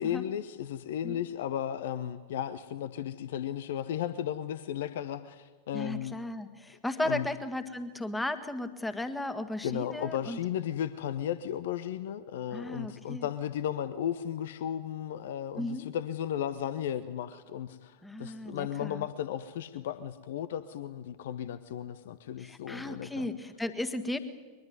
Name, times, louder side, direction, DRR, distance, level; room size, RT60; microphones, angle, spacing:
voice 1, 0.0-6.2 7.0-7.3 9.6-23.3, left 10 dB, 55° left, 14 dB, 0.9 m, -35 dB
voice 2, 5.7-10.4 12.5-13.3 15.6-15.9 18.0-19.0 22.4-24.2, left 1 dB, 5° left, 10 dB, 1.8 m, -35 dB
22.0 x 21.5 x 9.5 m, 1.4 s
figure-of-eight pair, 90°, 0 cm